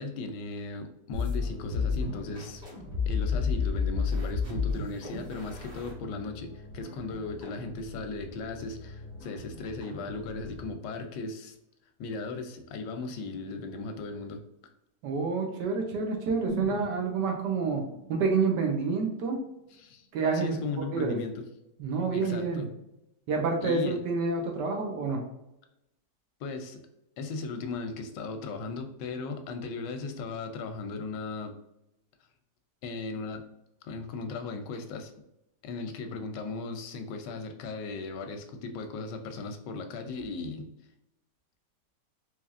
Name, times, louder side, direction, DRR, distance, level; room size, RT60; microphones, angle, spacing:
voice 1, 0.0-2.6 3.1-11.6 12.0-14.4 19.7-20.1 20.3-21.5 22.1-22.7 23.6-24.0 26.4-26.8 27.2-31.5 32.8-33.4 33.8-35.1 35.6-40.7, left 3 dB, 90° left, 6 dB, 1.2 m, -37 dB
sound 1, 1.1-10.8, left 5 dB, 30° right, 1.2 m, -33 dB
voice 2, 15.0-17.8 18.1-19.4 20.1-20.6 20.9-21.2 21.8-22.6 23.3-25.2, right 4 dB, 85° right, 2 dB, 1.4 m, -28 dB
sound 2, 16.5-20.4 20.8-20.9, right 1 dB, 50° right, 1.3 m, -43 dB
4.1 x 3.1 x 2.4 m, 0.87 s
omnidirectional pair, 1.8 m